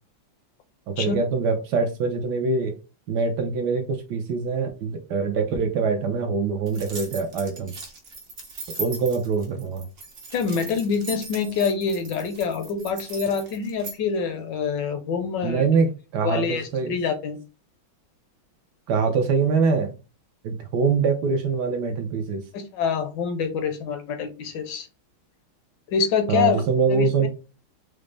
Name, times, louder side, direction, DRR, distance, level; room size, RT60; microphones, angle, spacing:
voice 1, 0.9-2.8 3.1-7.7 8.8-9.9 15.4-17.0 18.9-19.9 20.4-22.4 26.3-27.3, right 4 dB, 70° right, 1.1 m, -24 dB
sound 1, 6.7-14.0, right 3 dB, 55° right, 0.7 m, -38 dB
voice 2, 10.3-15.7 16.2-17.4 22.5-24.9 25.9-26.6 26.9-27.3, left 6 dB, 70° left, 1.3 m, -26 dB
5.0 x 2.0 x 3.3 m
omnidirectional pair, 2.1 m